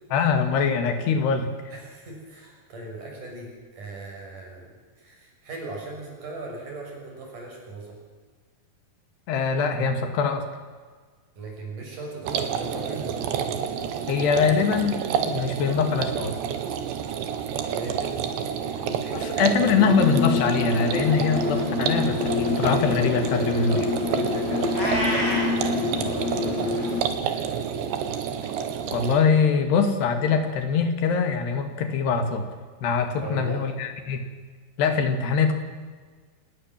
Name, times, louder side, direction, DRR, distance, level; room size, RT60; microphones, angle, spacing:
voice 1, 0.1-1.5 9.3-10.4 14.1-15.0 15.2-16.3 19.1-23.9 28.9-32.4 32.8-34.2 34.8-35.6, left 5 dB, 70° left, 6 dB, 4.4 m, -23 dB
voice 2, 1.7-8.0 11.4-13.6 17.5-18.2 18.6-19.4 24.0-25.0 25.4-27.6 33.2-33.7, right 2 dB, 50° right, 0 dB, 7.8 m, -39 dB
sound 1, 12.3-29.2, right 8 dB, 80° right, 4.0 m, -29 dB
sound 2, 19.8-27.0, left 4 dB, 50° left, 2.8 m, -27 dB
Meow, 24.7-25.6, equal, 20° left, 5.7 m, -27 dB
28.0 x 19.5 x 7.6 m, 1.5 s
omnidirectional pair, 4.9 m